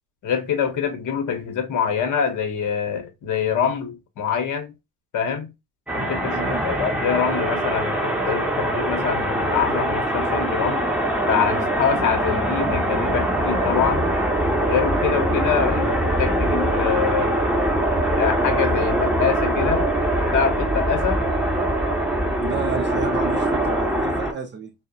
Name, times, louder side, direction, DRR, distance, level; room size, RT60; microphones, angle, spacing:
voice 1, 0.2-4.7 5.1-5.5 6.0-10.8 11.3-14.1 14.6-17.4 18.1-19.9 20.3-21.2, left 7 dB, 45° left, 0.9 m, -25 dB
sound 1, 5.9-24.3, right 1 dB, 5° right, 0.8 m, -22 dB
voice 2, 6.3-6.7 22.4-24.7, right 5 dB, 25° right, 0.4 m, -31 dB
2.6 x 2.1 x 2.5 m
hypercardioid pair, 80°, 44 cm